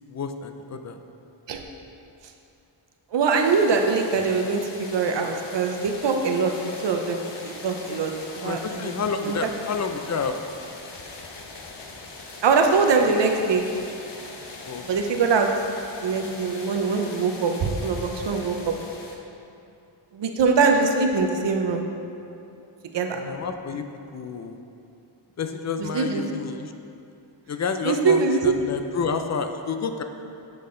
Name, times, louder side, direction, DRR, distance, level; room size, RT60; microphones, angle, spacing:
voice 1, 0.1-1.0 8.4-10.4 14.6-14.8 23.1-23.9 24.1-24.6 25.4-26.7 27.5-30.0, left 5 dB, 40° left, 7 dB, 0.4 m, -29 dB
voice 2, 3.1-6.5 6.8-8.1 8.4-8.9 9.2-9.3 12.4-13.6 14.8-15.5 16.0-18.7 20.1-21.8 22.9-23.2 25.9-26.3 27.8-28.5, right 4 dB, 65° right, 4 dB, 0.7 m, -22 dB
sound 1, 3.4-19.2, left 3 dB, 60° left, 0.9 m, -41 dB
7.6 x 5.6 x 3.7 m, 2.7 s
wide cardioid pair, 130°, 47 cm